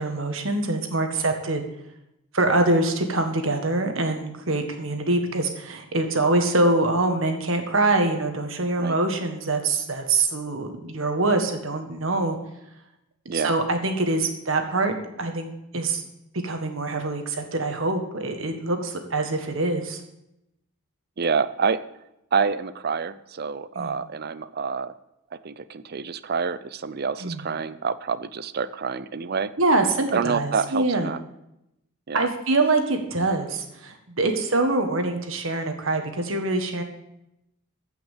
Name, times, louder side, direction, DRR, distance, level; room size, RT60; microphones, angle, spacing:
voice 1, 0.0-1.6 2.3-12.4 13.3-16.1 16.4-20.0 23.8-24.0 27.2-27.4 29.6-31.1 32.1-36.8, right 2 dB, 65° right, 5 dB, 1.7 m, -24 dB
voice 2, 21.2-21.8 22.3-24.9 25.3-29.5 30.1-31.2 32.1-32.3, right 5 dB, 45° right, 16 dB, 0.5 m, -27 dB
15.0 x 5.8 x 7.4 m, 0.86 s
head